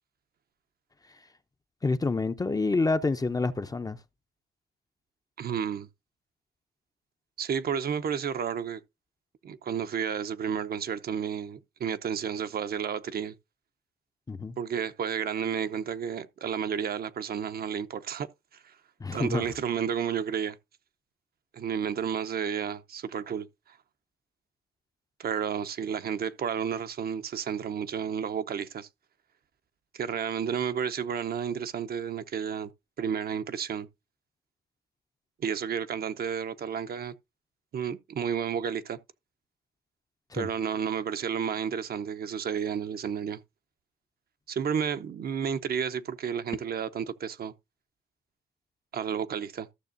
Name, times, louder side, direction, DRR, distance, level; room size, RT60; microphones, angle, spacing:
voice 1, 1.8-4.0 14.3-14.6 19.0-19.4 40.3-40.5, left 3 dB, 20° left, 0.5 m, -28 dB
voice 2, 5.4-5.9 7.4-8.8 9.4-13.3 14.6-18.3 18.6-18.7 19.1-20.6 21.5-23.8 25.2-28.9 29.9-32.7 33.0-33.9 35.4-37.1 37.7-39.0 40.3-43.4 44.5-47.5 48.9-49.7, right 7 dB, 50° right, 0.7 m, -31 dB
14.5 x 6.4 x 2.6 m
cardioid pair, 90°, 20 cm